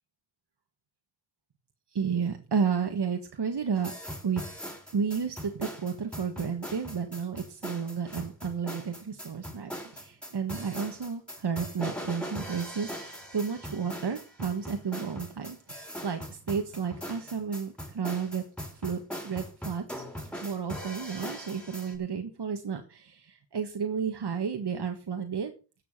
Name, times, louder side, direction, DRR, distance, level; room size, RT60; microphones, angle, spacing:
voice 1, 1.9-3.9 4.2-4.4 4.9-18.4 18.7-20.0 20.4-25.5, right 6 dB, 70° right, 5 dB, 1.6 m, -32 dB
sound 1, 3.8-22.0, equal, ahead, 5.7 m, -40 dB
16.5 x 7.1 x 5.6 m, 0.34 s
cardioid pair, 45°, 42 cm